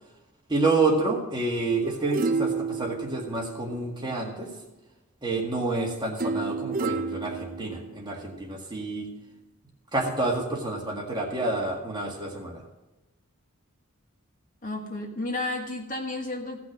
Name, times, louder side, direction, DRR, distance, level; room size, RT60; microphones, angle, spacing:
voice 1, 0.5-4.5 5.2-9.1 9.9-12.6, right 3 dB, 20° right, 0 dB, 1.8 m, -28 dB
sound 1, 1.8-4.2 6.2-8.2 8.7-8.8, right 4 dB, 40° right, 0.6 m, -31 dB
voice 2, 14.6-16.6, left 2 dB, 35° left, 2 dB, 1.6 m, -32 dB
16.5 x 6.1 x 6.0 m, 1.1 s
head